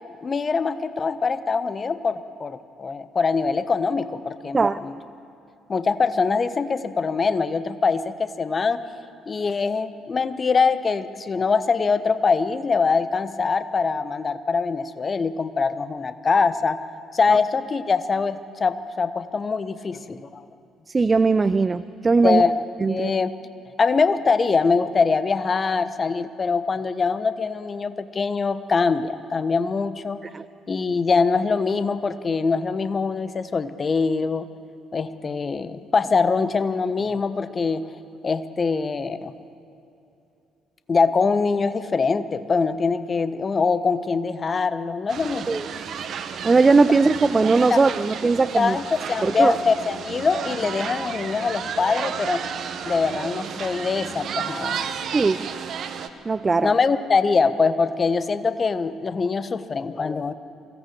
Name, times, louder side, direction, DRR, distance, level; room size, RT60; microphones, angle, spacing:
voice 1, 0.2-5.0 5.7-8.8 9.3-16.8 17.1-20.4 22.2-23.3 23.8-30.2 30.7-34.5 34.9-37.9 38.2-39.3 40.9-45.6 47.7-47.8 48.6-52.4 52.8-54.9 56.6-60.3, left 4 dB, 35° left, 12 dB, 1.2 m, -23 dB
voice 2, 20.9-22.4 22.8-23.1 30.3-30.4 45.5-45.7 46.4-48.8 49.2-49.6 55.1-55.5 56.3-56.7, right 4 dB, 30° right, 14 dB, 0.6 m, -19 dB
sound 1, 45.1-56.1, right 7 dB, 55° right, 1.3 m, -32 dB
23.5 x 17.0 x 7.6 m, 2.8 s
figure-of-eight pair, 45°, 0 cm